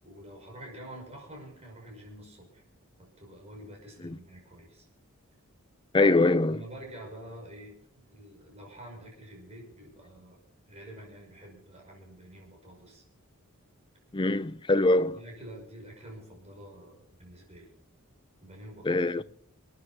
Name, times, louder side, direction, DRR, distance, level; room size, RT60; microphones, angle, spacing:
voice 1, 0.0-2.6 3.0-4.9 6.5-10.4 10.7-13.0 14.8-17.7 18.4-19.2, right 1 dB, 30° right, 5.9 m, -47 dB
voice 2, 5.9-6.6 14.1-15.2 18.8-19.2, left 2 dB, 20° left, 0.5 m, -23 dB
27.0 x 9.9 x 4.3 m
head